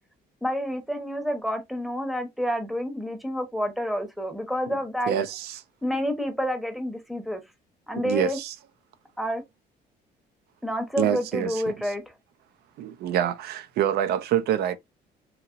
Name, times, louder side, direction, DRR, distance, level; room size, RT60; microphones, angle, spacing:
voice 1, 0.4-5.1 5.8-7.4 7.9-8.4 9.2-9.4 10.6-12.1, equal, ahead, 0.8 m, -29 dB
voice 2, 5.1-5.6 8.0-8.5 11.0-11.7 12.8-14.8, right 10 dB, 70° right, 0.5 m, -26 dB
2.8 x 2.8 x 2.4 m
cardioid pair, 110°, 17 cm